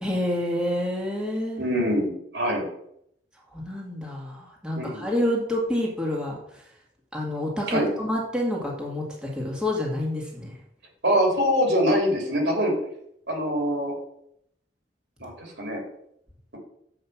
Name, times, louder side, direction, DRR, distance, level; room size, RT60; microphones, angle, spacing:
voice 1, 0.0-1.6 3.5-6.6 7.1-10.6, left 1 dB, 5° right, -3 dB, 1.9 m, -28 dB
voice 2, 1.6-2.6 4.8-5.0 7.7-7.9 11.0-12.7 13.3-14.0 15.2-15.8, equal, 80° right, 0 dB, 3.8 m, -24 dB
7.4 x 5.5 x 7.3 m, 0.72 s
head